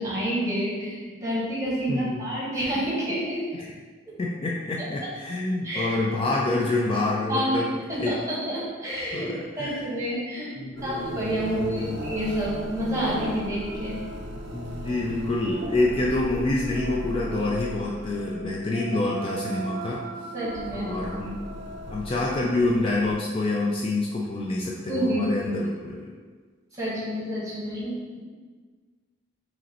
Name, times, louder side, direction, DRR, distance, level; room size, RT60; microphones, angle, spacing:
voice 1, 0.0-3.4 5.6-5.9 7.3-7.6 7.9-9.3 9.6-10.5 10.8-14.0 20.3-20.9 24.9-25.2 26.7-28.2, equal, 15° right, -7 dB, 1.3 m, -28 dB
voice 2, 1.9-2.3 3.6-3.7 4.2-8.1 9.1-9.9 10.6-12.0 14.5-20.0 20.7-21.4 21.9-26.1, left 2 dB, 25° left, -3 dB, 0.3 m, -27 dB
sound 1, 10.8-23.1, right 1 dB, 60° right, 0.5 m, -37 dB
5.0 x 3.1 x 2.9 m, 1.5 s
head